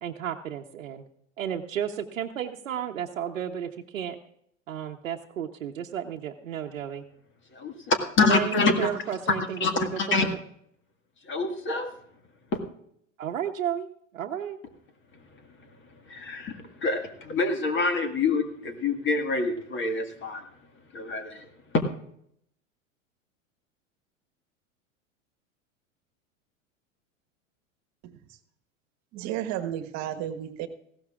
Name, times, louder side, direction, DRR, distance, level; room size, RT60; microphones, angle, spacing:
voice 1, 0.0-1.0 1.4-4.2 4.7-7.0 8.2-10.4 13.2-13.9 14.1-14.6, right 9 dB, 80° right, 1 dB, 1.0 m, -32 dB
voice 2, 7.5-8.9 9.3-10.3 11.2-11.9 12.5-12.6 15.3-15.7 16.1-20.5 20.9-21.5 21.7-21.8, left 3 dB, 30° left, 7 dB, 1.8 m, -26 dB
voice 3, 29.1-30.7, right 11 dB, 45° right, 9 dB, 1.4 m, -33 dB
19.0 x 15.5 x 2.4 m, 0.70 s
hypercardioid pair, 90°, 39 cm